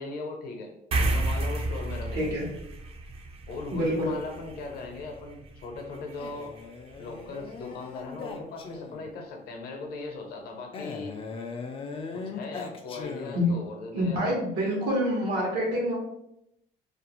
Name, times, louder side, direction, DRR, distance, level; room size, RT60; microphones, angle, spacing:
voice 1, 0.0-2.4 3.5-6.5 7.0-11.1 12.1-14.4, left 3 dB, 65° left, 2 dB, 0.7 m, -39 dB
sound 1, 0.9-7.7, right 2 dB, 35° right, 0.4 m, -33 dB
voice 2, 2.1-2.5 3.7-4.1 13.3-13.5 13.9-15.9, equal, 80° right, -2 dB, 0.9 m, -26 dB
Male speech man speaking, 6.2-9.2 10.7-13.7, left 4 dB, 35° left, 0.3 m, -39 dB
2.5 x 2.0 x 2.8 m, 0.80 s
cardioid pair, 110°, 17 cm